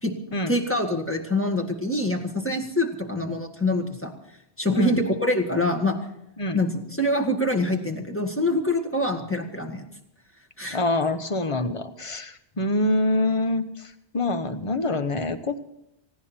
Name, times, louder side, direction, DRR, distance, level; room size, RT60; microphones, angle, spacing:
voice 1, 0.5-4.1 4.6-6.0 6.5-6.7 7.0-9.9 10.6-10.8, left 1 dB, 10° left, 2 dB, 1.9 m, -25 dB
voice 2, 4.7-5.1 6.4-6.6 10.7-15.6, left 2 dB, 30° left, 9 dB, 1.1 m, -26 dB
18.5 x 16.5 x 4.4 m, 0.81 s
omnidirectional pair, 1.1 m